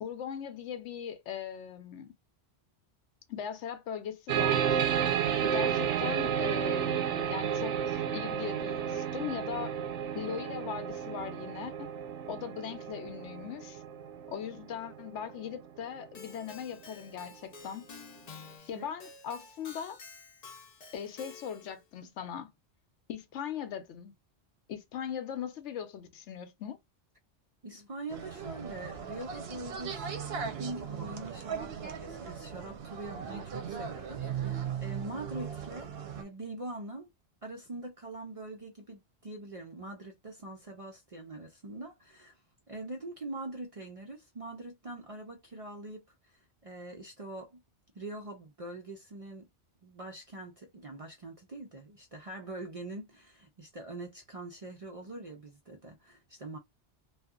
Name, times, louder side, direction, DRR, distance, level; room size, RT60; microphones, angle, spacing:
voice 1, 0.0-2.1 3.3-4.8 5.4-9.7 10.1-11.9 12.3-13.8 14.3-17.8 18.7-20.0 20.9-22.5 23.1-24.1 24.7-26.8, left 8 dB, 85° left, 0.9 m, -39 dB
sound 1, 4.3-15.5, right 8 dB, 90° right, 0.9 m, -32 dB
Keyboard (musical), 16.2-21.8, left 5 dB, 45° left, 0.6 m, -50 dB
voice 2, 27.6-37.1 37.4-42.4 42.7-47.6 47.9-49.5 49.8-56.6, right 2 dB, 50° right, 0.4 m, -43 dB
sound 2, 28.1-36.2, right 7 dB, 65° right, 0.8 m, -38 dB
2.7 x 2.4 x 2.3 m
omnidirectional pair, 1.2 m